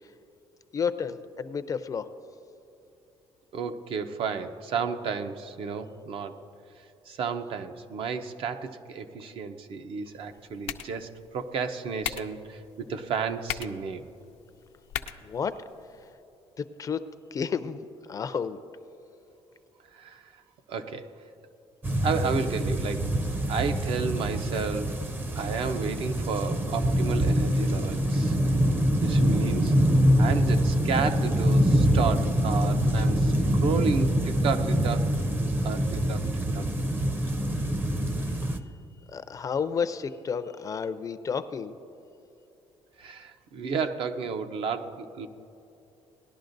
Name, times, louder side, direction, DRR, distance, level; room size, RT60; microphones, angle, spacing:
voice 1, 0.7-2.1 15.2-15.6 16.6-17.0 17.3-18.6 39.1-41.8, left 6 dB, 35° left, 12 dB, 0.4 m, -31 dB
voice 2, 3.5-6.4 7.1-14.0 19.9-20.2 20.7-21.1 22.0-23.1 23.5-24.9 25.4-28.4 29.0-29.7 30.2-35.1 35.6-36.2 36.5-36.6 43.0-45.3, right 5 dB, 60° right, 8 dB, 0.7 m, -32 dB
sound 1, 10.1-16.1, left 10 dB, 85° left, 0.5 m, -41 dB
sound 2, 21.8-38.6, equal, 20° right, 0.6 m, -25 dB
18.5 x 11.0 x 2.6 m, 2.8 s
cardioid pair, 125°, 10 cm